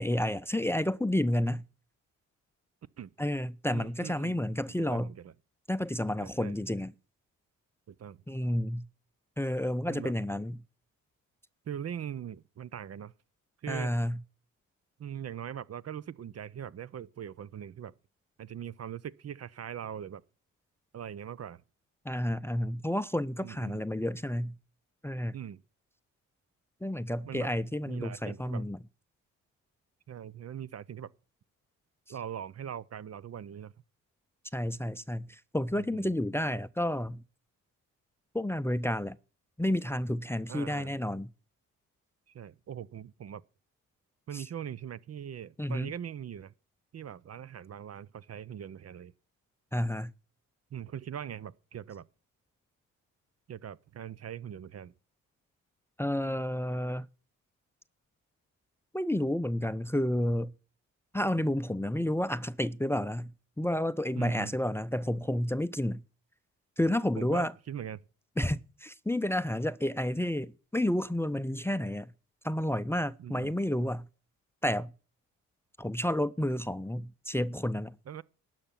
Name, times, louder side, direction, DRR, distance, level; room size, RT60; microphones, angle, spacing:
voice 1, 0.0-1.6 3.2-5.1 5.7-6.9 8.3-8.9 9.4-10.6 13.7-14.2 22.0-24.5 25.0-25.3 26.8-28.8 34.5-37.2 38.3-39.2 39.6-41.3 44.3-44.4 45.6-45.9 49.7-50.1 56.0-57.1 58.9-60.5 61.1-63.3 63.6-66.0 66.8-67.5 68.4-72.1 72.4-74.1 74.6-74.9 75.8-77.9, left 1 dB, 5° left, 0.6 m, -30 dB
voice 2, 3.7-4.4 4.8-5.3 6.2-6.6 7.9-8.2 9.9-10.1 11.7-13.1 13.6-13.9 15.0-17.9 18.4-20.2 20.9-21.6 23.4-23.8 25.3-25.6 27.2-27.5 27.9-28.6 30.1-31.1 32.1-33.7 35.8-36.1 40.5-41.0 42.3-43.4 44.3-46.5 46.9-49.1 50.7-52.1 53.5-54.9 64.2-64.5 67.2-68.0 73.2-73.5 78.1-78.2, right 9 dB, 45° right, 0.7 m, -41 dB
12.0 x 5.8 x 9.1 m
supercardioid pair, 55°, 35 cm